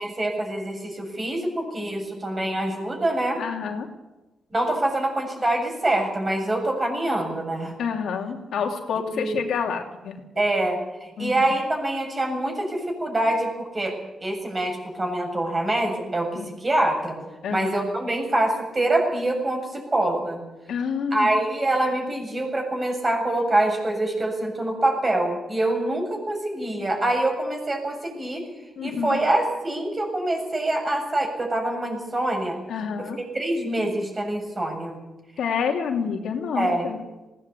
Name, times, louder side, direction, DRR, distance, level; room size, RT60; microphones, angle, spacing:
voice 1, 0.0-3.4 4.5-7.7 9.1-9.4 10.4-17.2 17.5-20.4 21.1-28.4 28.8-32.6 33.0-35.0 36.6-36.9, right 1 dB, 25° right, 3 dB, 7.2 m, -25 dB
voice 2, 3.4-3.9 7.8-10.2 11.2-11.5 16.3-16.5 17.4-17.7 20.7-21.3 28.8-29.2 32.7-33.2 35.4-37.0, left 6 dB, 80° left, 2 dB, 3.0 m, -28 dB
20.0 x 18.0 x 8.3 m, 1.1 s
cardioid pair, 100°, 0 cm